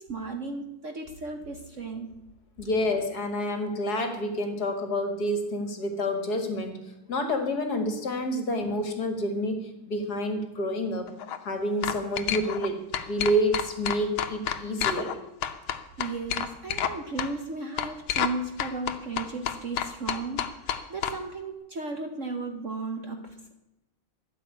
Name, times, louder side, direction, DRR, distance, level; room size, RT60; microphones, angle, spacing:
voice 1, 0.0-2.3 16.0-23.5, right 3 dB, 45° right, 5 dB, 1.1 m, -35 dB
voice 2, 2.6-11.1 11.4-15.2, equal, 50° left, 6 dB, 2.2 m, -28 dB
sound 1, 11.1-11.4 11.8-12.7 12.9-15.1 15.4-16.9 17.2-17.3 17.8-18.3 18.6-21.1, left 9 dB, 90° left, 1.8 m, -29 dB
13.0 x 7.0 x 9.8 m, 0.98 s
omnidirectional pair, 2.2 m